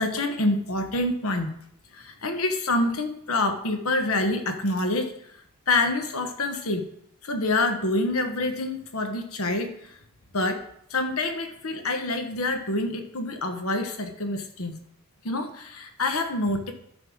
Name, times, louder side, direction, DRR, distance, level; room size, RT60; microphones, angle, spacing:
voice 1, 0.0-1.5 1.9-5.1 5.7-6.9 7.2-10.0 10.3-10.6 10.9-14.8 15.2-16.7, left 2 dB, 75° left, 6 dB, 1.3 m, -26 dB
10.5 x 5.5 x 6.4 m, 0.72 s
head